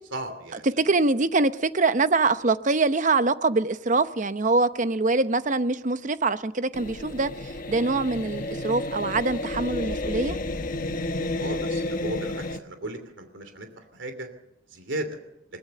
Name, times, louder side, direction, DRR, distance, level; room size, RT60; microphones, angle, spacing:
voice 1, 0.1-0.8 11.4-14.3 14.7-15.2, right 1 dB, 80° right, 7 dB, 2.9 m, -35 dB
voice 2, 0.8-7.3 7.7-10.4, right 3 dB, 40° right, 12 dB, 0.9 m, -24 dB
sound 1, 6.7-12.6, left 2 dB, 45° left, 1.3 m, -31 dB
22.0 x 20.5 x 6.7 m, 0.84 s
head